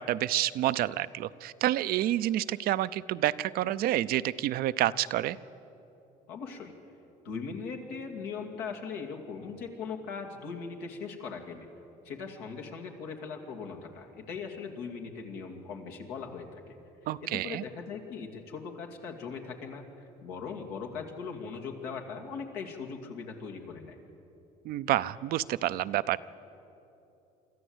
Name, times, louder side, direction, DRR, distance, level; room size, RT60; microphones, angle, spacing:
voice 1, 0.0-5.4 17.1-17.6 24.7-26.3, right 14 dB, 65° right, 15 dB, 0.6 m, -29 dB
voice 2, 6.3-6.7 7.2-11.7 12.0-16.8 17.2-19.8 20.2-24.0, left 5 dB, 85° left, 3 dB, 2.5 m, -39 dB
24.5 x 13.5 x 8.0 m, 3.0 s
supercardioid pair, 95°, 16 cm